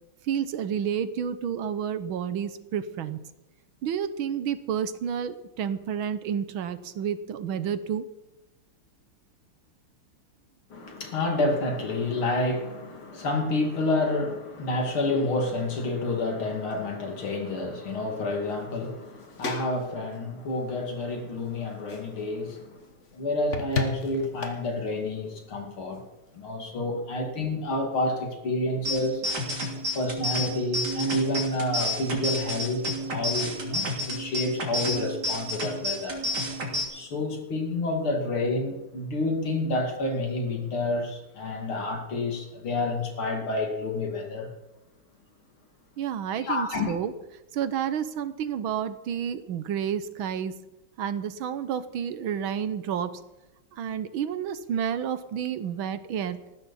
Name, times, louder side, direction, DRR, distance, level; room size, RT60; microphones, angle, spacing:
voice 1, 0.2-3.2 3.8-8.1 46.0-47.1 47.5-50.6 51.0-53.1 53.7-56.4, right 8 dB, 75° right, 13 dB, 1.7 m, -30 dB
voice 2, 10.7-22.8 23.1-26.0 26.3-29.2 29.9-36.3 36.9-44.5 46.4-46.9, left 2 dB, 75° left, 2 dB, 3.3 m, -29 dB
sound 1, 18.5-26.5, left 4 dB, 35° left, 1.7 m, -38 dB
sound 2, 28.8-36.8, left 1 dB, 50° right, 3.5 m, -31 dB
19.5 x 14.5 x 4.2 m, 1.0 s
omnidirectional pair, 2.3 m